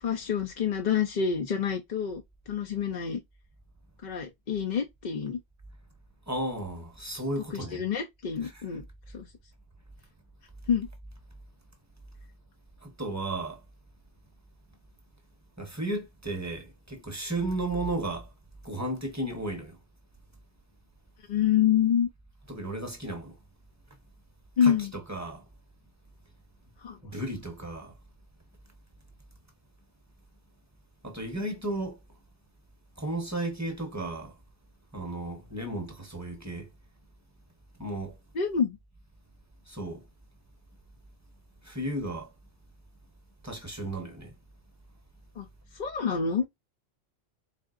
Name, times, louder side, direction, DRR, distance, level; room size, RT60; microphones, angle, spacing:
voice 1, 0.0-3.2 4.0-5.4 7.5-8.8 9.1-9.3 10.7-10.9 21.3-22.1 24.6-24.9 26.8-27.0 38.3-38.8 45.4-45.5 45.7-46.5, left 7 dB, 50° left, 0.6 m, -27 dB
voice 2, 6.3-7.8 8.4-8.6 12.8-13.6 15.6-18.3 18.6-19.8 22.5-23.4 24.6-25.4 27.0-27.9 31.0-32.0 33.0-34.3 34.9-36.7 37.8-38.2 39.7-40.0 41.6-42.3 43.4-44.3, right 1 dB, 15° right, 0.9 m, -34 dB
4.2 x 3.6 x 2.4 m
omnidirectional pair, 1.1 m